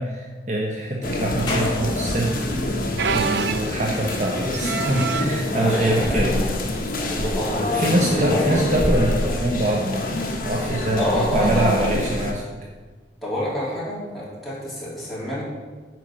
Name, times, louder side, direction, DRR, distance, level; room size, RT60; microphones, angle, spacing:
voice 1, 0.0-2.4 3.1-6.4 7.7-12.4, right 1 dB, 40° right, -1 dB, 1.0 m, -24 dB
sound 1, 1.0-12.3, left 1 dB, 50° left, 1.4 m, -26 dB
sound 2, 1.5-14.6, left 2 dB, 25° left, 2.0 m, -44 dB
sound 3, 3.0-5.5 6.2-6.5 6.8-6.9 7.8-8.0 9.7-9.8, right 6 dB, 65° right, 0.4 m, -28 dB
voice 2, 5.5-6.6 7.0-8.7 11.0-12.0 13.2-15.4, equal, ahead, -9 dB, 3.3 m, -27 dB
9.2 x 5.1 x 6.3 m, 1.4 s
head